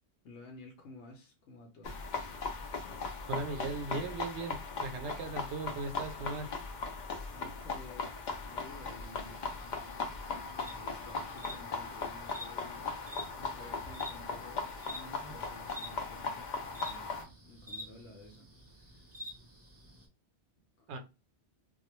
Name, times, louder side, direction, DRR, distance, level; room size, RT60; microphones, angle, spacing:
voice 1, 0.2-2.0 7.3-9.5 10.5-13.0 13.4-18.5 18.7-19.1 20.8-21.0, left 2 dB, 75° left, 0.9 m, -53 dB
sound 1, 1.8-17.2, left 4 dB, 60° left, 0.5 m, -39 dB
voice 2, 3.3-6.5 20.9-21.0, right 3 dB, 75° right, 0.9 m, -38 dB
sound 2, 8.6-20.1, left 1 dB, 20° right, 0.4 m, -50 dB
2.2 x 2.1 x 3.0 m
omnidirectional pair, 1.2 m